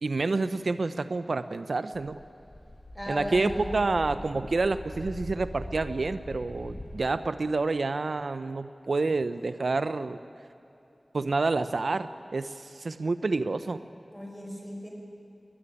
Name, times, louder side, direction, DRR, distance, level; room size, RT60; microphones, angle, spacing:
voice 1, 0.0-2.2 3.1-10.2 11.1-13.8, right 3 dB, 75° right, 12 dB, 0.6 m, -28 dB
sound 1, 1.9-7.0, left 1 dB, 55° left, 4.2 m, -41 dB
voice 2, 2.9-3.7 14.1-14.9, equal, 5° left, 0 dB, 5.7 m, -36 dB
20.0 x 19.5 x 9.9 m, 2.7 s
wide cardioid pair, 70°, 0 cm